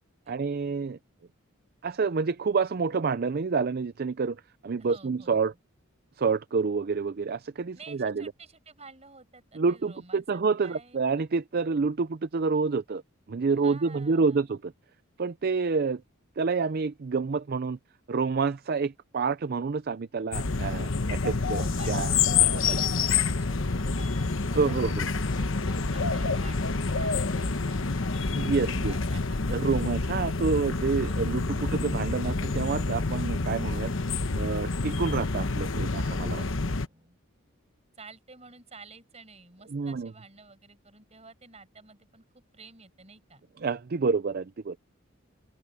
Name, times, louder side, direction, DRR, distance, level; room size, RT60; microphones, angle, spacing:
voice 1, 0.3-1.0 1.8-5.5 6.2-8.3 9.5-13.0 13.3-14.7 15.2-16.0 16.4-17.8 18.1-22.1 22.4-22.8 24.5-25.1 28.3-28.9 29.5-33.9 34.3-36.4 39.7-40.1 43.6-44.8, right 4 dB, 45° right, 0.5 m, -28 dB
voice 2, 4.8-5.4 7.7-11.0 13.5-14.5 21.5-28.1 28.6-29.8 36.4-37.2 38.0-42.2 42.5-43.4, right 4 dB, 30° right, 5.4 m, -51 dB
sound 1, 20.3-36.9, left 4 dB, 60° left, 1.1 m, -28 dB
sound 2, 24.7-33.6, equal, ahead, 3.4 m, -48 dB
open air
head